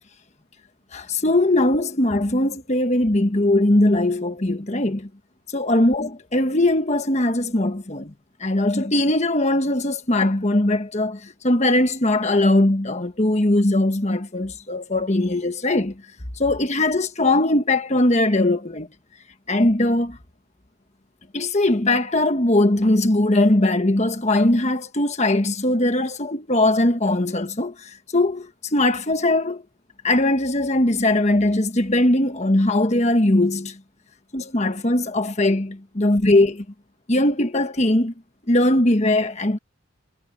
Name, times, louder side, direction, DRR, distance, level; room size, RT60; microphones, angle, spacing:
voice 1, 0.9-5.1 5.5-8.1 8.4-16.0 16.4-18.9 19.5-20.2 21.3-29.6 30.0-33.8 34.3-36.6 37.1-38.1 38.5-39.6, left 1 dB, 30° left, 1.3 m, -20 dB
head